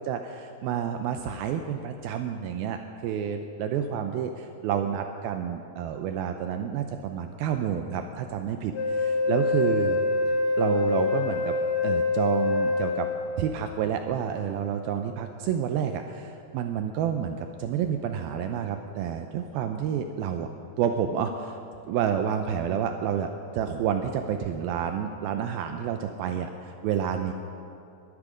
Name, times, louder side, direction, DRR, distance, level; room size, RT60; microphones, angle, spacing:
voice 1, 0.1-10.0 10.6-11.6 11.8-13.1 13.4-20.5 20.8-21.6 21.9-27.3, right 8 dB, 80° right, 6 dB, 2.4 m, -29 dB
Wind instrument woodwind instrument, 8.7-13.5, left 3 dB, 50° left, 1.8 m, -25 dB
21.5 x 12.0 x 5.0 m, 2.5 s
omnidirectional pair, 4.6 m